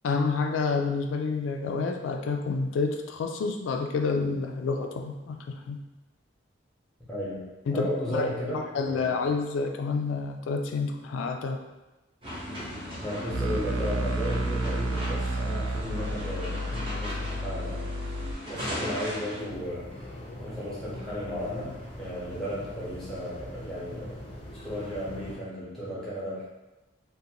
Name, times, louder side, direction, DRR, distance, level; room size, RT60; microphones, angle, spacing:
voice 1, 0.0-5.8 7.7-8.3 8.5-11.6, left 4 dB, 90° left, 4 dB, 0.3 m, -29 dB
voice 2, 7.1-9.0 13.0-18.2 18.5-19.9 20.4-24.2 24.6-26.5, equal, ahead, -9 dB, 0.8 m, -35 dB
sound 1, 12.2-19.4, equal, 30° right, 0.8 m, -38 dB
sound 2, 13.3-18.3, right 1 dB, 85° right, 0.4 m, -31 dB
sound 3, 19.5-25.4, left 1 dB, 30° left, 0.5 m, -43 dB
2.5 x 2.1 x 2.8 m, 1.1 s
head